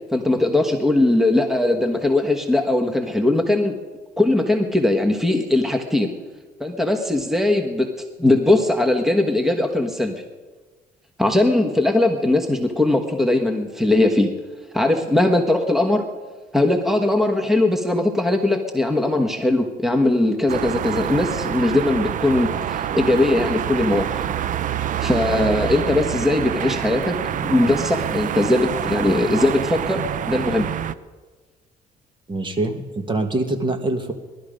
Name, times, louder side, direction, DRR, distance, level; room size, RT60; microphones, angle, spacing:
voice 1, 0.1-3.7 4.2-6.1 6.6-7.9 8.2-10.1 11.2-14.3 14.7-16.0 16.5-24.3 25.0-27.1 27.4-30.7, left 2 dB, ahead, 4 dB, 1.3 m, -20 dB
sound 1, 20.5-31.0, right 10 dB, 50° right, 0.6 m, -26 dB
voice 2, 32.3-34.1, right 2 dB, 30° right, 7 dB, 1.6 m, -24 dB
19.0 x 12.5 x 5.1 m, 1.3 s
cardioid pair, 110°, 17 cm